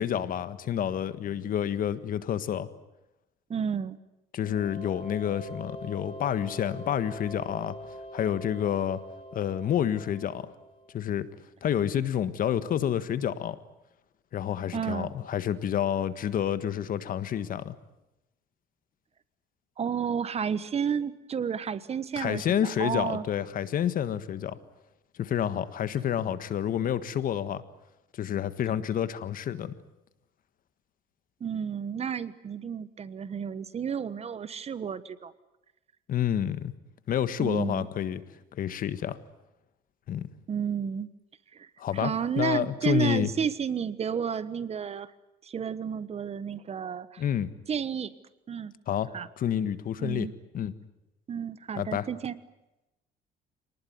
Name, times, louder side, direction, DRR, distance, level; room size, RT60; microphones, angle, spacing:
voice 1, 0.0-2.7 4.3-7.8 8.1-9.0 9.3-10.5 10.9-11.3 11.6-13.6 14.3-17.7 22.2-24.6 25.2-27.6 28.1-29.7 36.1-36.7 37.1-38.2 38.5-39.2 40.1-40.3 41.8-43.3 47.2-47.5 48.9-49.1 49.4-50.3 50.5-50.7 51.8-52.1, left 9 dB, 55° left, 13 dB, 1.6 m, -29 dB
voice 2, 3.5-4.0 14.7-15.1 19.8-23.2 31.4-35.3 37.4-37.9 40.5-41.1 41.5-41.7 41.9-45.1 45.4-47.2 47.7-48.1 48.5-48.7 49.1-49.3 50.0-50.3 51.3-52.4, right 7 dB, 40° right, 15 dB, 1.3 m, -31 dB
sound 1, 4.4-11.0, equal, 35° left, 2.7 m, -43 dB
26.0 x 19.5 x 9.5 m, 0.95 s
cardioid pair, 110°, 17 cm